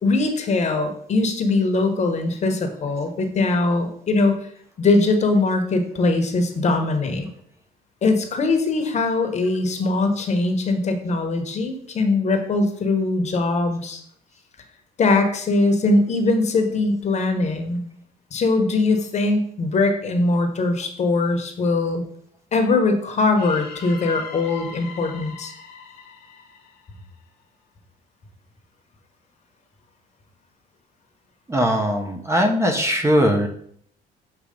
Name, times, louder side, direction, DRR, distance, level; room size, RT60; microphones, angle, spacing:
voice 1, 0.0-4.5 4.8-7.3 8.0-14.0 15.0-17.9 18.3-22.0 22.5-25.5, left 3 dB, 40° left, 5 dB, 1.1 m, -21 dB
sound 1, 23.3-27.4, left 5 dB, 70° left, 1.2 m, -40 dB
voice 2, 31.5-33.5, equal, 15° right, 4 dB, 0.9 m, -20 dB
6.6 x 2.9 x 5.1 m, 0.63 s
cardioid pair, 110°, 17 cm